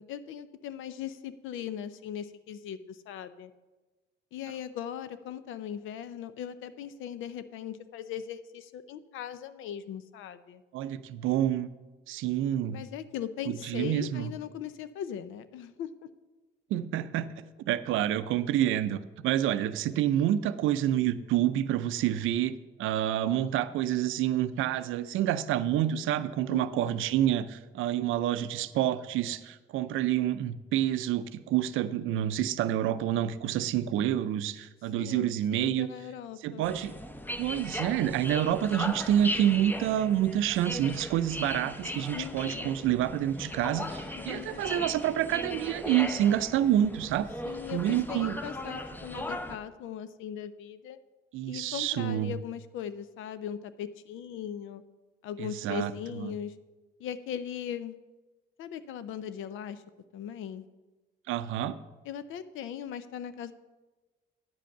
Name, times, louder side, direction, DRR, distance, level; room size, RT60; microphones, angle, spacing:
voice 1, 0.0-3.5 4.3-10.6 12.7-15.9 26.5-27.0 35.0-36.7 42.1-42.7 44.1-44.9 47.4-51.0 51.5-54.8 55.2-56.5 57.0-57.9 58.6-59.8 60.1-60.6 62.0-63.5, left 9 dB, 85° left, 13 dB, 0.6 m, -39 dB
voice 2, 10.7-11.7 12.1-12.8 13.5-14.3 16.7-17.3 17.7-35.9 36.4-37.0 37.4-47.3 47.7-48.4 51.3-52.4 55.4-55.9 56.2-56.3 61.3-61.8, right 11 dB, 85° right, 13 dB, 0.5 m, -28 dB
sound 1, 36.6-49.6, left 1 dB, 10° left, 0.7 m, -38 dB
9.5 x 5.2 x 6.6 m, 1.2 s
cardioid pair, 90°, 20 cm